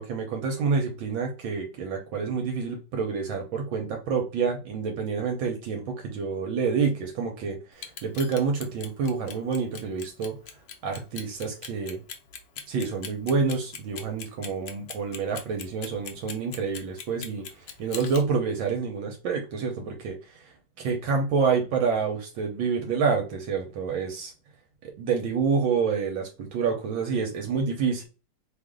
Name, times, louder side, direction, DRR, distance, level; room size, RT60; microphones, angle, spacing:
voice 1, 0.0-10.4 10.8-12.0 12.7-20.2 20.8-24.3 25.0-28.0, right 5 dB, 70° right, 1.4 m, -28 dB
Clock, 7.7-18.2, left 7 dB, 75° left, 0.8 m, -39 dB
3.3 x 2.5 x 3.6 m
omnidirectional pair, 2.4 m